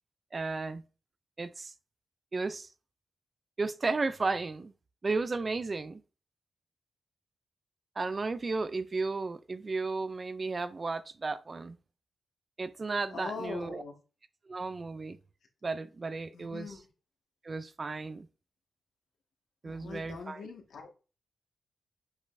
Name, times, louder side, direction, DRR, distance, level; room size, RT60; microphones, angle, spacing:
voice 1, 0.3-0.8 1.4-1.7 2.3-2.7 3.6-4.7 5.0-6.0 8.0-11.8 12.6-13.8 14.5-15.2 15.6-16.8 17.4-18.3 19.6-20.5, right 3 dB, 30° right, 0.4 m, -34 dB
voice 2, 13.1-13.9 16.3-16.8 19.6-20.9, left 4 dB, 80° left, 1.7 m, -42 dB
8.2 x 5.4 x 2.7 m
wide cardioid pair, 155°, 0 cm